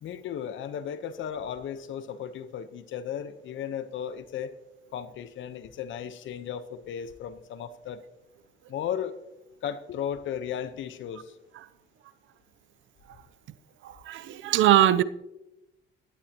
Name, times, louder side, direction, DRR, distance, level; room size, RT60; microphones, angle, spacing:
voice 1, 0.0-4.5 4.9-8.0 8.7-9.2 9.6-11.3, left 8 dB, 75° left, 1.1 m, -35 dB
voice 2, 13.8-15.0, right 12 dB, 75° right, 0.7 m, -21 dB
17.0 x 11.5 x 3.0 m
cardioid pair, 90°, 20 cm